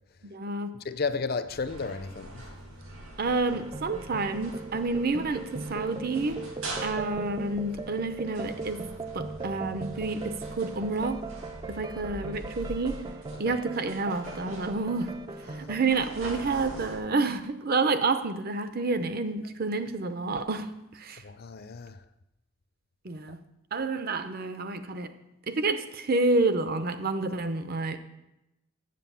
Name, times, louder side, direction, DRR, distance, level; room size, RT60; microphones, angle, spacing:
voice 1, 0.2-0.7 3.2-6.4 6.8-8.8 9.1-11.2 11.7-13.0 13.4-15.1 15.5-20.7 20.9-21.2 23.0-23.4 23.7-25.1 25.5-28.0, right 3 dB, 45° right, 0.7 m, -29 dB
voice 2, 0.8-2.4 13.5-13.6 15.5-15.7 21.2-22.0, left 4 dB, 45° left, 0.5 m, -33 dB
sound 1, 1.5-17.0, right 1 dB, 70° right, 2.3 m, -43 dB
sound 2, 3.5-15.8, right 3 dB, 20° right, 0.3 m, -39 dB
8.1 x 7.6 x 6.9 m
head